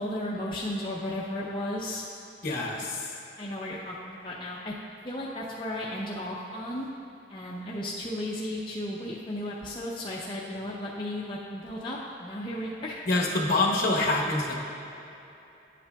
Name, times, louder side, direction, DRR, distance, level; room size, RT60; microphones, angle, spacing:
voice 1, 0.0-2.0 3.4-4.7 5.0-6.9 7.3-13.0, left 1 dB, 25° left, -6 dB, 0.5 m, -34 dB
voice 2, 2.4-3.1 13.1-14.6, left 2 dB, 50° left, -2 dB, 1.0 m, -26 dB
10.5 x 8.3 x 2.3 m, 2.9 s
head